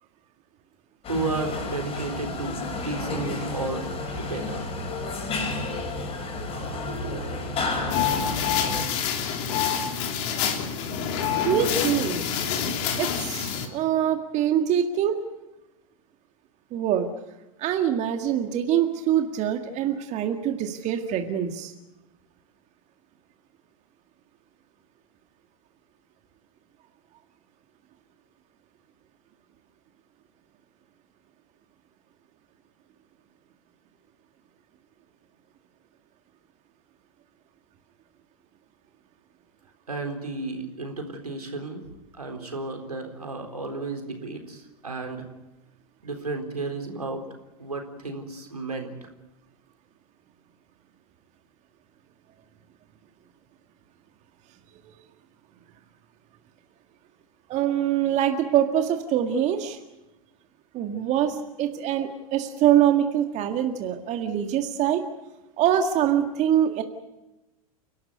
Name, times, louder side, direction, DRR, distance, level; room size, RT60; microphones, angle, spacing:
sound 1, 1.0-8.8, left 2 dB, 30° left, 6.6 m, -31 dB
voice 1, 1.1-3.9 4.2-4.6 39.9-41.8 42.1-45.3 46.0-47.3 47.6-48.9, right 3 dB, 85° right, 3 dB, 4.0 m, -33 dB
sound 2, 7.9-13.7, left 7 dB, 50° left, 3.3 m, -27 dB
voice 2, 11.4-12.2 13.0-15.2 16.7-17.1 17.6-21.7 57.5-59.8 60.7-65.0 65.6-66.8, right 10 dB, 40° right, 5 dB, 1.9 m, -24 dB
30.0 x 12.5 x 9.6 m, 1.0 s
figure-of-eight pair, 90°, 19 cm